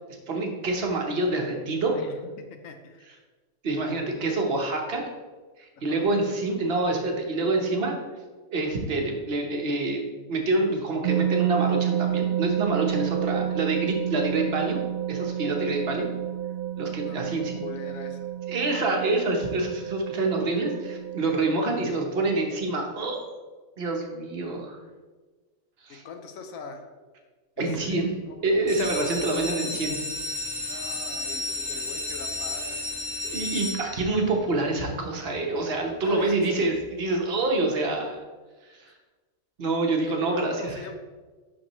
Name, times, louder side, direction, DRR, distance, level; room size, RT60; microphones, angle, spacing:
voice 1, 0.3-2.0 3.6-5.0 5.6-7.9 8.5-10.0 10.3-14.8 15.1-16.1 16.8-17.6 18.5-23.2 23.8-24.8 25.8-26.0 27.6-28.1 28.4-30.0 33.3-38.2 38.7-38.9 39.6-40.8, right 2 dB, 50° right, 1 dB, 1.1 m, -26 dB
voice 2, 1.9-3.1 5.8-6.4 17.0-18.3 24.5-24.6 25.9-26.9 27.6-28.5 30.7-32.9 36.0-36.6 38.9-39.0 40.0-40.9, left 5 dB, 75° left, 6 dB, 1.1 m, -42 dB
sound 1, 11.0-21.6, right 11 dB, 85° right, 1.1 m, -29 dB
sound 2, 28.5-34.3 34.9-35.4 35.8-35.9 36.1-36.2 36.6-36.8, left 2 dB, 5° right, 1.8 m, -32 dB
11.0 x 3.8 x 3.0 m, 1.3 s
omnidirectional pair, 1.4 m